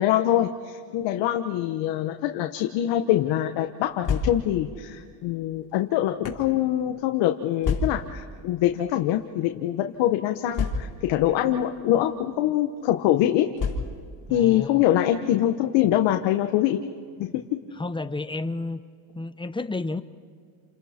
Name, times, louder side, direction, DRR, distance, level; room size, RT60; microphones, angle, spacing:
voice 1, 0.0-13.5 14.3-16.8 17.2-17.3, left 12 dB, 80° left, 5 dB, 1.2 m, -24 dB
sound 1, 3.8-4.7 5.5-6.5 7.6-8.2 9.1-9.3 9.5-9.6 10.5-11.2 12.1-12.3 13.6-14.2, left 4 dB, 45° left, 3.5 m, -29 dB
voice 2, 14.3-14.8 17.8-18.8 19.1-20.0, left 3 dB, 10° left, 12 dB, 0.8 m, -31 dB
29.0 x 27.5 x 4.4 m, 2.1 s
cardioid pair, 105°, 43 cm